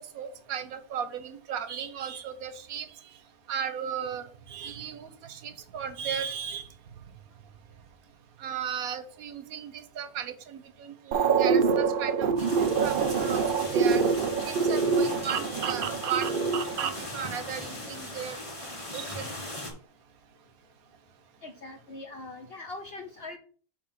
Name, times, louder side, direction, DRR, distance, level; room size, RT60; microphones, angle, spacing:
voice 1, 0.0-2.9 3.5-6.7 8.4-14.0 14.4-16.4 16.8-18.4 18.6-19.3, right 8 dB, 85° right, 9 dB, 1.3 m, -36 dB
sound 1, 11.1-17.1, right 5 dB, 55° right, 0.6 m, -25 dB
sound 2, 12.4-19.7, left 1 dB, 25° left, 1.6 m, -39 dB
voice 2, 21.4-23.4, left 2 dB, 55° left, 5 dB, 0.8 m, -42 dB
5.8 x 3.8 x 5.7 m, 0.42 s
omnidirectional pair, 1.5 m